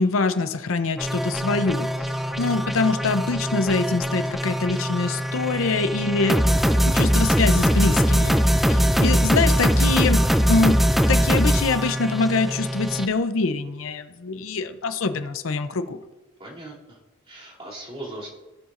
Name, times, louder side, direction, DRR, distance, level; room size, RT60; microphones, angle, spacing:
voice 1, 0.0-1.9 2.4-6.4 6.8-8.4 8.7-10.8 11.1-16.0, left 3 dB, 80° left, 10 dB, 0.6 m, -24 dB
sound 1, 1.0-13.1, equal, ahead, 0.4 m, -21 dB
voice 2, 16.4-17.0 17.3-18.3, right 1 dB, 30° right, -5 dB, 2.9 m, -38 dB
17.0 x 7.1 x 2.5 m, 1.1 s
head